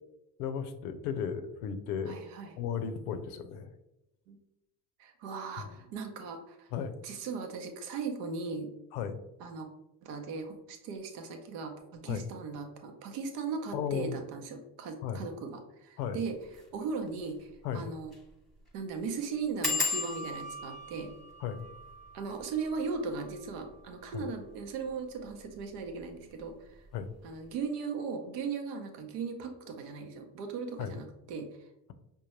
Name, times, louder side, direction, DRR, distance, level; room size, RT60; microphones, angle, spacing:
voice 1, 0.4-2.2 2.6-3.7 5.6-5.7 6.7-6.9 8.9-9.2 12.1-12.2 13.7-14.2 15.0-15.2 16.0-16.2 17.6-17.8 21.4-21.6 24.1-24.3 26.9-27.1 30.8-30.9, left 7 dB, 80° left, 9 dB, 0.6 m, -35 dB
voice 2, 2.0-2.5 4.3-4.4 5.0-6.7 7.0-8.7 9.4-9.7 10.0-16.4 16.7-18.1 18.7-21.1 22.1-26.8 27.2-31.5, right 5 dB, 80° right, 4 dB, 0.8 m, -38 dB
sound 1, 16.4-16.6 17.1-17.2 17.4-17.5 18.0-18.3 18.5-18.6 19.6-24.9 25.6-26.1 26.4-26.8 27.0-27.1, left 3 dB, ahead, 1.1 m, -38 dB
5.2 x 2.2 x 2.9 m, 0.89 s
hypercardioid pair, 60°, 46 cm